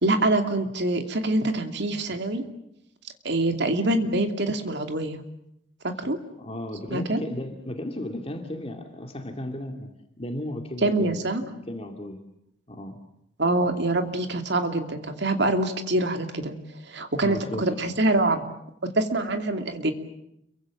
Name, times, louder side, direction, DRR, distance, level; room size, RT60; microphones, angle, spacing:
voice 1, 0.0-2.4 3.2-5.2 6.0-6.2 6.9-7.2 10.8-11.4 13.4-16.5 16.9-18.4 18.9-19.9, right 2 dB, 60° right, 6 dB, 2.7 m, -25 dB
voice 2, 6.4-9.9 10.2-12.2 12.7-13.0 17.2-17.6, left 1 dB, 30° left, 4 dB, 2.3 m, -35 dB
29.5 x 23.5 x 7.6 m, 0.79 s
head